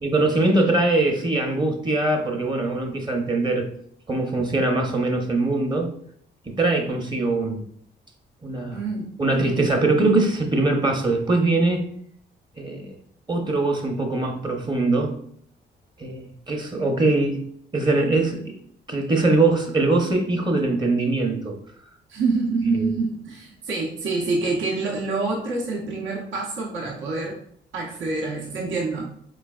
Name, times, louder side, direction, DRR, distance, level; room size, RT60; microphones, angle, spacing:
voice 1, 0.0-3.7 4.1-5.9 6.5-7.6 8.4-8.8 9.2-11.8 12.6-12.9 13.3-15.1 16.0-17.4 17.7-18.6 18.9-21.6 22.7-22.9, right 2 dB, 20° right, 3 dB, 0.8 m, -22 dB
voice 2, 8.7-9.1 22.1-27.4 27.7-29.0, right 3 dB, 75° right, -2 dB, 0.8 m, -26 dB
4.3 x 3.2 x 2.4 m, 0.63 s
cardioid pair, 90°, 20 cm